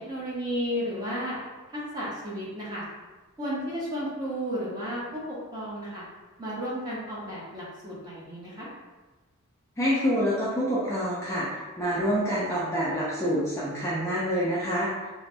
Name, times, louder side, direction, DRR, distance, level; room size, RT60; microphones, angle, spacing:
voice 1, 0.0-1.4 1.7-2.8 3.4-6.0 6.4-8.7, equal, 20° right, -7 dB, 0.8 m, -33 dB
voice 2, 9.8-14.9, equal, 15° left, -8 dB, 0.4 m, -27 dB
3.1 x 2.0 x 2.5 m, 1.2 s
head